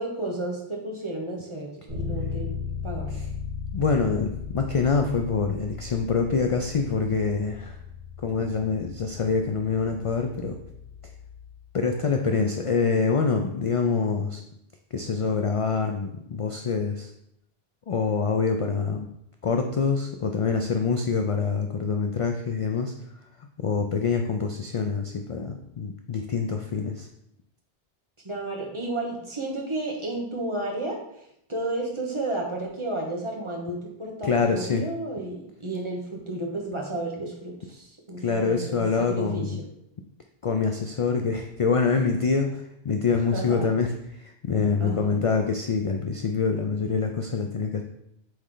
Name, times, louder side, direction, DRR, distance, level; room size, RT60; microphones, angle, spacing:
voice 1, 0.0-3.2 28.2-31.0 31.5-39.5 43.3-43.7 44.8-45.2, right 2 dB, 30° right, -1 dB, 1.2 m, -32 dB
Bass guitar, 1.9-11.7, left 6 dB, 55° right, 2.2 m, -37 dB
voice 2, 3.7-7.8 8.2-10.6 11.7-14.4 14.9-17.1 17.9-19.1 19.4-22.9 23.6-27.1 34.2-34.8 38.2-39.6 40.4-47.8, left 5 dB, 50° left, 4 dB, 0.4 m, -25 dB
7.8 x 3.2 x 3.8 m, 0.78 s
omnidirectional pair, 1.0 m